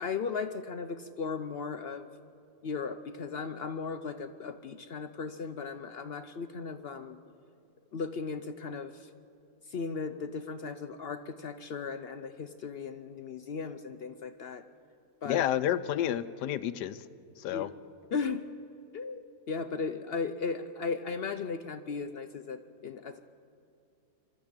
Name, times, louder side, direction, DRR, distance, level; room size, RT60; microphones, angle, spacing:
voice 1, 0.0-2.1 2.6-7.2 7.9-9.1 9.7-14.6 15.2-15.5 17.5-17.7 18.1-18.5 18.9-23.2, left 5 dB, 65° left, 9 dB, 0.6 m, -36 dB
voice 2, 15.2-17.0 17.4-17.7, left 11 dB, 90° left, 13 dB, 1.3 m, -30 dB
23.0 x 12.5 x 8.8 m, 2.5 s
omnidirectional pair, 1.7 m